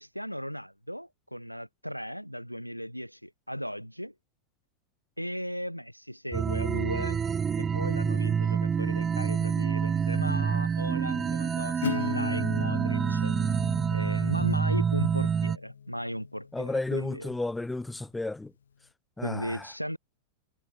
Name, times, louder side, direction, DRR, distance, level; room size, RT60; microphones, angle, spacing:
voice 1, 0.0-4.1 5.2-7.2 7.6-13.6 13.9-17.3 19.2-20.0, equal, 90° left, 6.9 m, -36 dB
sound 1, 6.3-15.6, right 6 dB, 20° right, 1.9 m, -27 dB
Acoustic guitar / Strum, 11.8-17.3, left 7 dB, 70° left, 1.4 m, -38 dB
voice 2, 16.5-18.5 19.2-19.7, left 2 dB, 5° left, 1.5 m, -32 dB
figure-of-eight pair, 90°, 0 cm